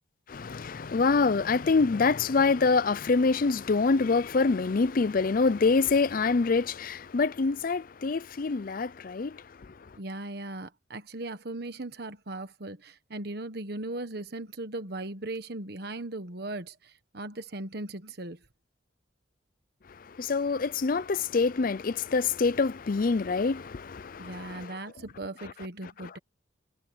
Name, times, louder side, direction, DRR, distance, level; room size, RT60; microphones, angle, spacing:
voice 1, 0.3-9.7 20.1-24.8 25.4-25.5 26.0-26.1, left 4 dB, 45° left, 0.5 m, -26 dB
voice 2, 9.9-18.4 24.2-26.2, right 2 dB, 55° right, 1.3 m, -38 dB
head